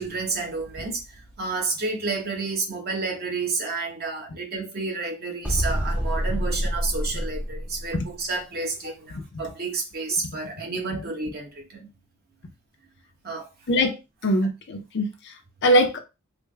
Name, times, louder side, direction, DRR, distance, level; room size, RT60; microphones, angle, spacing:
voice 1, 0.0-11.9 13.2-13.5, right 3 dB, 45° right, 0.9 m, -30 dB
sound 1, 5.4-8.2, equal, 5° right, 0.6 m, -27 dB
voice 2, 14.2-15.3 15.6-16.0, equal, 55° left, 0.5 m, -22 dB
3.3 x 2.0 x 3.2 m
head